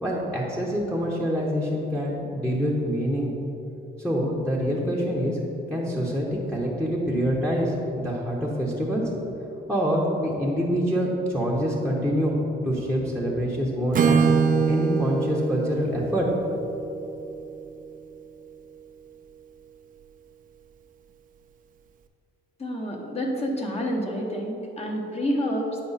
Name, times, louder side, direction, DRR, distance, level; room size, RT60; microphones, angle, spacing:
voice 1, 0.0-3.3 4.0-5.4 5.7-9.1 9.7-12.4 12.6-14.2 14.7-16.3 16.7-16.9, equal, 5° left, -3 dB, 1.0 m, -26 dB
Acoustic guitar / Strum, 13.9-17.9, right 5 dB, 45° right, 0.5 m, -24 dB
voice 2, 22.6-25.8, equal, 30° left, 0 dB, 1.2 m, -28 dB
8.6 x 4.8 x 4.1 m, 3.0 s
cardioid pair, 90°, 20 cm